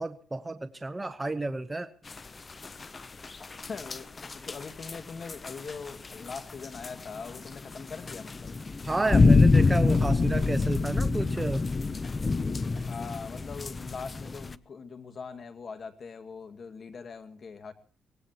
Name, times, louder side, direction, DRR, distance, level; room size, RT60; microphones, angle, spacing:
voice 1, 0.0-1.9 8.8-11.6, right 2 dB, 15° right, 10 dB, 1.0 m, -31 dB
sound 1, 2.1-14.6, left 3 dB, 30° left, 0.7 m, -26 dB
voice 2, 3.6-8.6 12.9-17.7, left 5 dB, 45° left, 8 dB, 2.2 m, -42 dB
24.0 x 18.5 x 3.0 m, 0.39 s
cardioid pair, 90°, 0 cm